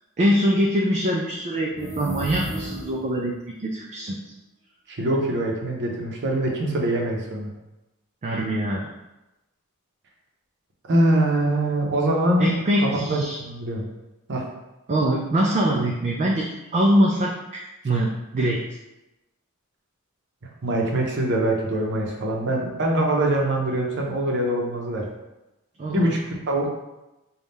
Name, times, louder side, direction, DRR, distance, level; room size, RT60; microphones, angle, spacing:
voice 1, 0.2-4.3 8.2-8.9 12.4-13.4 14.9-18.7 25.8-26.1, equal, 35° right, -2 dB, 0.3 m, -23 dB
sound 1, 1.7-3.2, equal, 15° left, 0.9 m, -33 dB
voice 2, 4.9-7.5 10.9-12.5 12.8-13.8 14.3-14.4 20.6-25.0 25.9-26.7, right 1 dB, 55° right, 0 dB, 0.7 m, -23 dB
4.0 x 2.3 x 3.5 m, 0.99 s
head